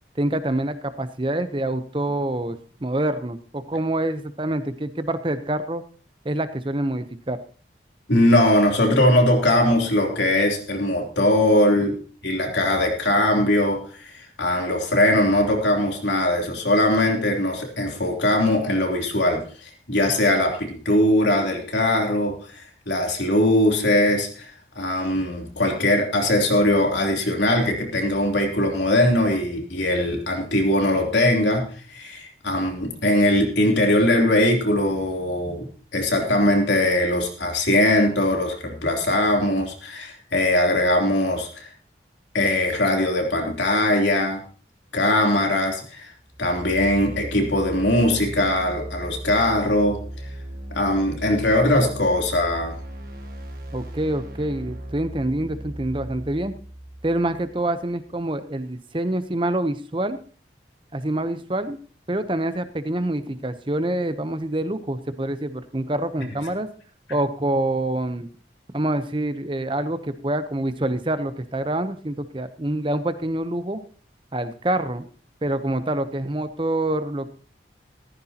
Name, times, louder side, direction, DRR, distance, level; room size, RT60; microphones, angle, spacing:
voice 1, 0.2-5.8 6.2-7.4 53.7-56.5 57.0-60.2 60.9-61.8 62.1-66.7 67.1-68.3 68.7-73.8 74.3-75.1 75.4-77.3, right 1 dB, 30° right, 11 dB, 0.8 m, -26 dB
voice 2, 8.1-12.0 12.2-41.7 42.3-44.4 44.9-46.1 46.4-50.0 50.7-52.7, left 1 dB, 80° left, 1 dB, 3.2 m, -21 dB
sound 1, 46.2-58.0, right 1 dB, 50° right, 1.7 m, -37 dB
15.0 x 14.0 x 2.9 m, 0.41 s
head